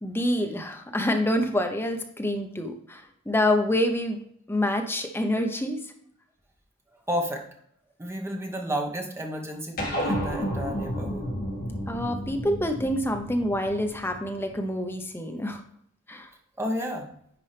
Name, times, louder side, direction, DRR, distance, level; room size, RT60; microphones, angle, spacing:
voice 1, 0.0-3.0 3.3-4.2 4.5-5.8 11.9-15.6 16.1-16.3, left 1 dB, 10° left, 4 dB, 0.7 m, -27 dB
voice 2, 7.1-7.4 8.0-11.3 16.6-17.1, equal, 15° right, 2 dB, 1.1 m, -31 dB
sound 1, 9.8-14.5, equal, 45° left, 2.2 m, -32 dB
9.8 x 4.5 x 3.3 m, 0.66 s
head